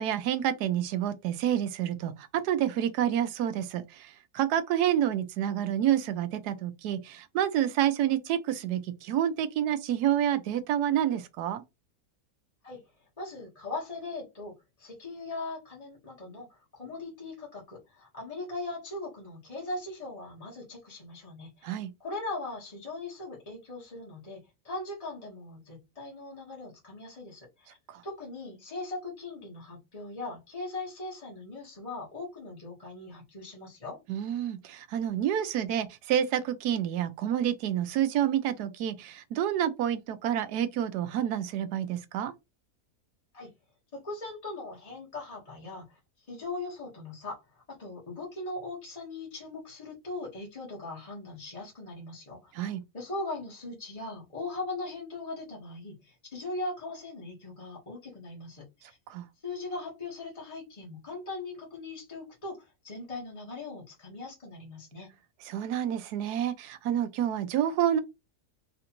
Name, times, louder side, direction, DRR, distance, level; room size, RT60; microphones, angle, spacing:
voice 1, 0.0-11.6 21.6-21.9 27.9-28.0 34.1-42.3 52.5-52.8 59.1-59.2 65.4-68.0, right 10 dB, 75° right, 1.2 m, -28 dB
voice 2, 13.2-14.5 14.8-27.8 28.0-34.0 43.3-43.5 43.9-47.4 47.7-52.5 52.9-59.0 59.4-65.1, left 2 dB, 25° left, 1.2 m, -40 dB
4.2 x 2.5 x 2.9 m
omnidirectional pair, 1.7 m